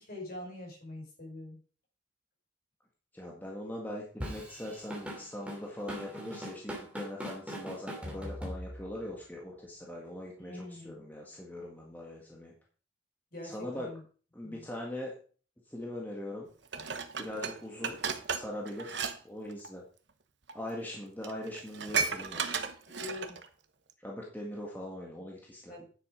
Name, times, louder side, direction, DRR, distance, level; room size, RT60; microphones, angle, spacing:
voice 1, 0.0-1.6 10.4-11.0 13.3-14.0 14.4-14.6 22.9-23.4 25.7-25.9, left 2 dB, 50° left, 0 dB, 5.2 m, -44 dB
voice 2, 3.1-12.5 13.4-13.9 14.3-15.1 15.7-16.5 17.1-18.0 18.3-19.8 20.5-22.6 24.0-25.7, left 1 dB, 10° left, -2 dB, 1.7 m, -41 dB
Drum kit / Drum, 4.2-9.0, equal, 5° right, 2.6 m, -40 dB
Dishes pots and pans, 16.7-19.2 19.4-19.7 20.5-20.6 20.9-21.0 21.2-23.5 23.9-24.0, right 5 dB, 60° right, 1.1 m, -34 dB
9.7 x 7.5 x 5.1 m, 0.40 s
head